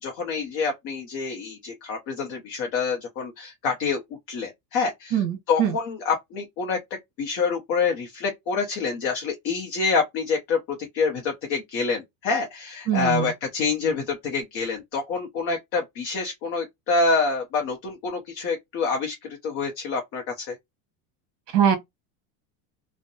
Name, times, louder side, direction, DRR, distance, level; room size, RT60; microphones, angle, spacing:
voice 1, 0.0-4.0 4.3-6.8 7.2-20.6, left 4 dB, 35° left, 0.5 m, -27 dB
voice 2, 5.1-5.7 12.9-13.3 21.5-21.8, right 9 dB, 65° right, 1.0 m, -22 dB
2.6 x 2.0 x 2.6 m
cardioid pair, 175°, 42 cm